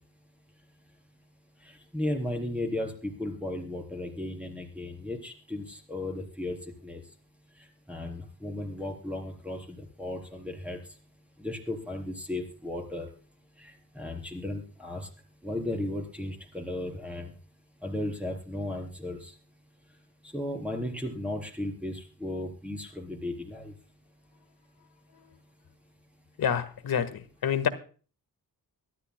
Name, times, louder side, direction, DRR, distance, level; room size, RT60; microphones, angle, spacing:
voice 1, 1.9-6.6 6.8-7.0 7.9-10.8 11.4-13.1 13.6-15.1 15.4-17.3 17.8-19.3 20.3-23.7, left 1 dB, 5° right, 2 dB, 4.0 m, -35 dB
voice 2, 26.4-27.7, left 8 dB, 75° left, 10 dB, 1.6 m, -28 dB
24.0 x 12.5 x 2.2 m, 0.39 s
wide cardioid pair, 115°, 37 cm